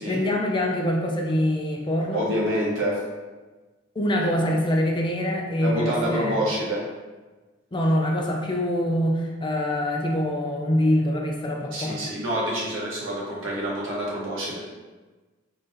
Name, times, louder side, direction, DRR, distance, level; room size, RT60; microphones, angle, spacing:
voice 1, 0.1-2.3 4.0-6.4 7.7-12.0, left 1 dB, 25° left, 0 dB, 0.5 m, -24 dB
voice 2, 2.1-3.0 5.6-6.8 11.7-14.6, equal, 85° right, -5 dB, 1.2 m, -27 dB
3.8 x 2.7 x 3.9 m, 1.3 s
head